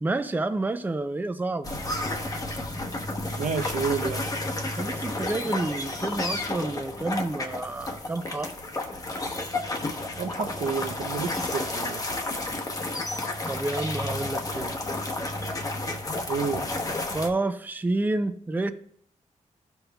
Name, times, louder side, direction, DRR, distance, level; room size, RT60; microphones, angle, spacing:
voice 1, 0.0-1.7 4.7-8.5 13.5-14.8 17.1-18.7, right 2 dB, 15° right, 9 dB, 0.4 m, -29 dB
sound 1, 1.6-17.3, left 2 dB, 30° left, 0.9 m, -31 dB
voice 2, 3.4-4.3 10.2-12.2 16.3-16.6, right 5 dB, 85° right, 7 dB, 0.7 m, -30 dB
13.5 x 5.4 x 2.3 m, 0.65 s
wide cardioid pair, 115°, 13 cm